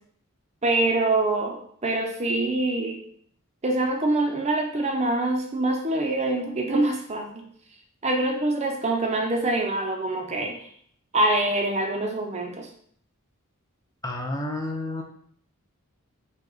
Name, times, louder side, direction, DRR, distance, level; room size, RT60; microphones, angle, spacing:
voice 1, 0.6-3.0 3.6-7.5 8.0-10.7 11.1-12.7, right 2 dB, 30° right, 2 dB, 0.6 m, -25 dB
voice 2, 14.0-15.0, left 2 dB, 15° left, 1 dB, 0.6 m, -30 dB
5.4 x 2.3 x 3.9 m, 0.63 s
head